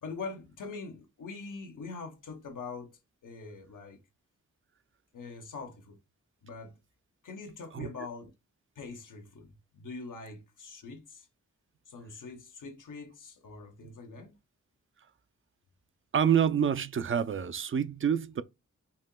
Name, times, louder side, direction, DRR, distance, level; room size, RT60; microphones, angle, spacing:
voice 1, 0.0-4.0 5.1-6.0 6.4-6.8 7.2-8.3 8.7-11.3 11.9-14.3, left 4 dB, 90° left, 1.1 m, -43 dB
voice 2, 16.1-18.4, right 8 dB, 40° right, 0.5 m, -27 dB
5.4 x 2.8 x 2.2 m
cardioid pair, 65°, 30 cm